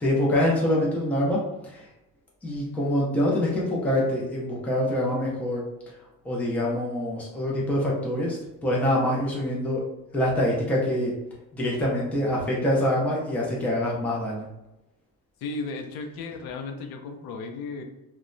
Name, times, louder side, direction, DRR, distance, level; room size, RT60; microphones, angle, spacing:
voice 1, 0.0-1.4 1.6-1.8 2.4-5.6 6.2-9.8 10.1-11.1 11.5-14.5, left 1 dB, 5° left, -4 dB, 0.3 m, -25 dB
voice 2, 15.4-17.8, left 3 dB, 75° left, 4 dB, 0.5 m, -35 dB
2.9 x 2.1 x 2.4 m, 0.96 s
cardioid pair, 170°, 36 cm